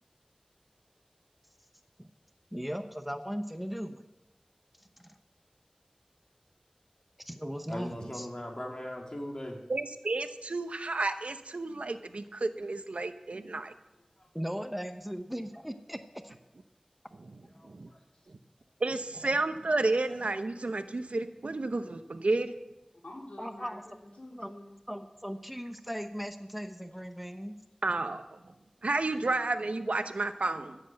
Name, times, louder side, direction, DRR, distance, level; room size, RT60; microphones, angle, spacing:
voice 1, 2.5-4.1 7.3-8.3 14.3-16.3 19.3-19.4 23.4-23.8 24.4-24.5 24.9-27.6, equal, 5° right, 7 dB, 0.9 m, -38 dB
voice 2, 7.7-9.6 17.6-18.0, left 1 dB, 40° left, 0 dB, 2.9 m, -39 dB
voice 3, 9.7-13.7 17.6-17.9 18.8-22.5 27.8-28.4 28.8-30.8, right 2 dB, 85° right, 9 dB, 0.9 m, -31 dB
voice 4, 22.9-24.8 29.0-29.4, left 1 dB, 85° left, -1 dB, 3.0 m, -48 dB
14.5 x 7.8 x 7.7 m, 0.98 s
wide cardioid pair, 55°, 2 cm